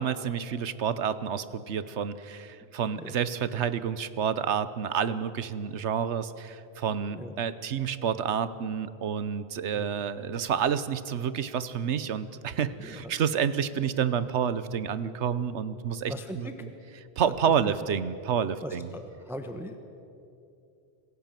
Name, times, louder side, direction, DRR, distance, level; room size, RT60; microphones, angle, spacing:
voice 1, 0.0-16.7 17.2-18.9, right 8 dB, 90° right, 14 dB, 1.2 m, -29 dB
voice 2, 12.8-13.1 16.1-16.7 17.2-17.3 17.6-17.7 18.6-19.8, equal, ahead, 6 dB, 1.0 m, -40 dB
26.5 x 16.0 x 7.5 m, 2.7 s
omnidirectional pair, 1.1 m